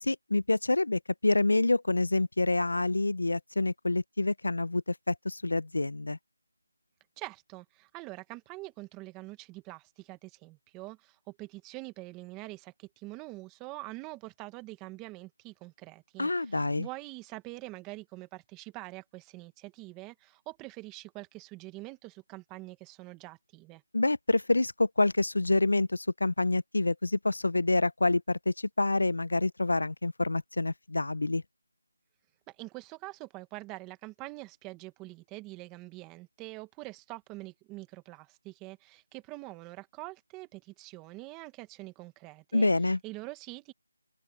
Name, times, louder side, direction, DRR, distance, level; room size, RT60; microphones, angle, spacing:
voice 1, 0.1-6.2 16.2-16.9 23.9-31.4 42.5-43.0, left 2 dB, 75° left, 0.9 m, -27 dB
voice 2, 7.2-23.8 32.5-42.7 43.0-43.7, right 21 dB, 10° right, 1.6 m, -45 dB
open air
figure-of-eight pair, 170°, 0 cm